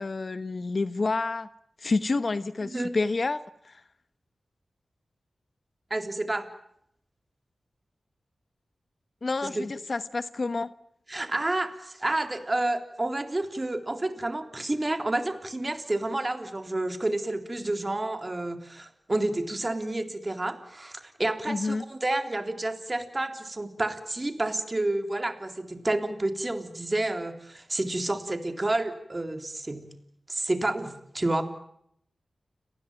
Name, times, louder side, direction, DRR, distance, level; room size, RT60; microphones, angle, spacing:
voice 1, 0.0-1.5 1.8-3.8 9.2-10.7 21.5-21.8, left 3 dB, 55° left, 14 dB, 1.1 m, -29 dB
voice 2, 5.9-6.5 9.4-9.7 11.1-30.0 30.3-31.4, right 2 dB, 30° right, 7 dB, 3.6 m, -30 dB
30.0 x 19.5 x 9.0 m, 0.73 s
cardioid pair, 55°, 0 cm